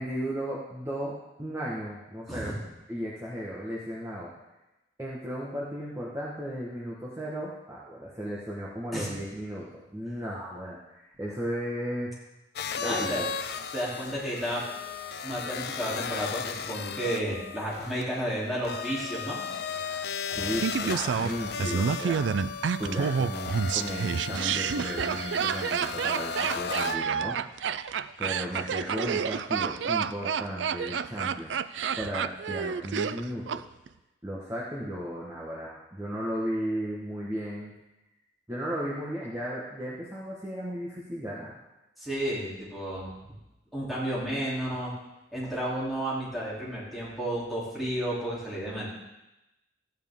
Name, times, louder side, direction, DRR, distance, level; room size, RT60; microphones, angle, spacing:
voice 1, 0.0-2.6 2.9-4.3 5.0-12.1 12.8-13.3 20.3-27.5 28.2-33.6 34.2-37.7 38.5-41.5, equal, 15° right, -6 dB, 1.4 m, -35 dB
sound 1, 12.6-27.0, left 6 dB, 60° left, 0.6 m, -36 dB
voice 2, 12.7-13.2 13.7-14.6 15.2-19.4 42.0-43.3 43.7-44.9 45.3-48.9, right 1 dB, ahead, -8 dB, 3.1 m, -32 dB
Laughter, 20.6-33.6 33.9-34.0, right 6 dB, 85° right, 0.4 m, -29 dB
14.5 x 9.3 x 3.7 m, 0.97 s
head